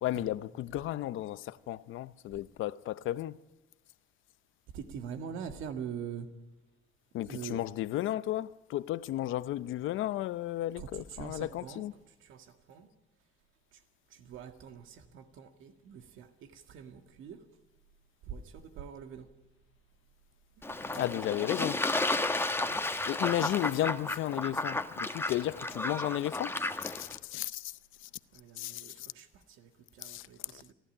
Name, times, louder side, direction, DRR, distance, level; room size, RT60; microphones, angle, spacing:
voice 1, 0.0-3.4 7.1-11.9 20.9-21.8 23.0-28.1 28.6-29.1 30.0-30.3 30.5-30.6, left 14 dB, 85° left, 0.7 m, -34 dB
voice 2, 4.7-6.3 7.2-7.6 10.8-11.9 12.2-12.9 13.7-13.8 14.1-17.4 18.2-19.3 20.6-21.1 22.7-23.3 28.3-30.7, right 7 dB, 90° right, 1.8 m, -44 dB
Fowl / Bird / Water, 20.6-27.2, left 2 dB, 10° left, 1.3 m, -33 dB
29.5 x 11.5 x 10.0 m
cardioid pair, 90°, 20 cm